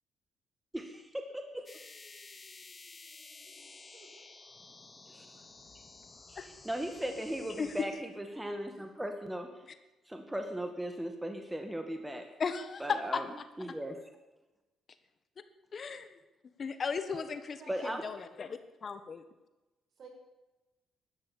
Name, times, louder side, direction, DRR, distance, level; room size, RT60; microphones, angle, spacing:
voice 1, 0.7-1.7 5.1-5.3 6.3-9.5 10.1-12.3 12.8-13.2 13.6-14.0 17.7-18.0, right 1 dB, 10° right, 5 dB, 1.8 m, -37 dB
sound 1, 1.7-7.8, left 3 dB, 30° left, 2.3 m, -52 dB
voice 2, 3.9-4.3 5.1-5.2 17.1-17.9 20.0-20.1, right 4 dB, 60° right, 1 dB, 6.0 m, -52 dB
voice 3, 12.4-13.5 15.7-16.2 16.6-19.2, left 5 dB, 45° left, 11 dB, 1.4 m, -36 dB
13.0 x 12.0 x 8.7 m, 1.1 s
cardioid pair, 90°, 0 cm